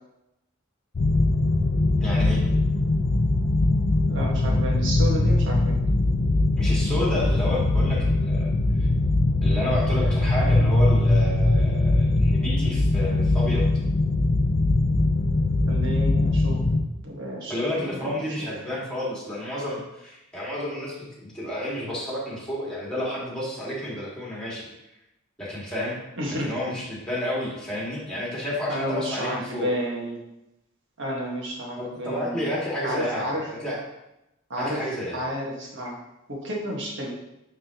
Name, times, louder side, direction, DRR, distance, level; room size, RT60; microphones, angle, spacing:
sound 1, 1.0-16.8, left 2 dB, 55° left, 0.6 m, -21 dB
voice 1, 2.0-2.4 6.6-8.5 8.8-8.9 9.4-13.7 17.5-24.7 25.4-26.0 26.4-29.7 31.8-33.3 33.6-33.8 34.6-35.2, left 1 dB, 5° left, -6 dB, 1.9 m, -30 dB
voice 2, 4.1-5.8 15.7-16.6 17.0-18.5 26.2-26.5 28.7-30.2 31.0-32.5 32.8-33.5 34.5-34.9 35.1-36.0 36.3-37.1, equal, 65° right, -3 dB, 1.6 m, -31 dB
8.9 x 3.7 x 3.0 m, 0.90 s
head